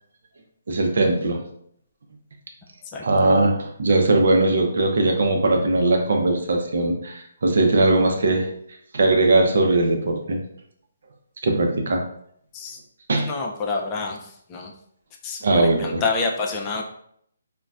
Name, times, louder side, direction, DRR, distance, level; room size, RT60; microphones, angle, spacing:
voice 1, 0.7-1.4 3.0-8.5 8.9-10.4 11.4-12.0 13.1-13.3 15.4-16.0, right 2 dB, 65° right, 2 dB, 0.6 m, -20 dB
voice 2, 13.3-14.2 14.5-14.7 15.2-16.8, left 4 dB, 25° left, 0 dB, 0.4 m, -27 dB
3.9 x 2.2 x 2.4 m, 0.69 s
figure-of-eight pair, 145°, 0 cm